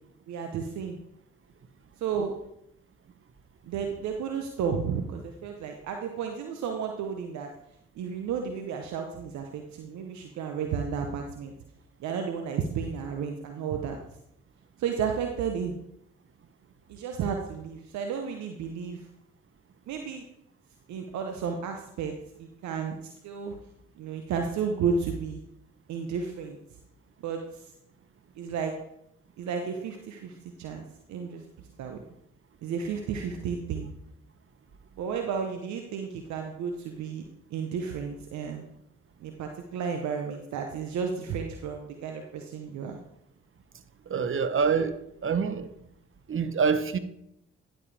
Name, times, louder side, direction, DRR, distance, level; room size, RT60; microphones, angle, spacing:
voice 1, 0.3-1.0 2.0-2.4 3.7-7.5 8.0-11.5 12.0-14.0 14.8-15.7 16.9-19.0 19.9-20.2 20.9-22.1 22.4-23.5 24.0-25.4 25.9-26.6 27.2-27.7 28.4-28.8 29.4-31.4 31.8-32.0 32.6-33.9 35.0-37.2 37.5-38.6 39.2-43.0, right 6 dB, 75° right, 4 dB, 0.9 m, -32 dB
voice 2, 44.1-45.7 46.3-47.0, right 6 dB, 45° right, 11 dB, 1.0 m, -26 dB
11.0 x 7.4 x 3.4 m, 0.78 s
hypercardioid pair, 40°, 29 cm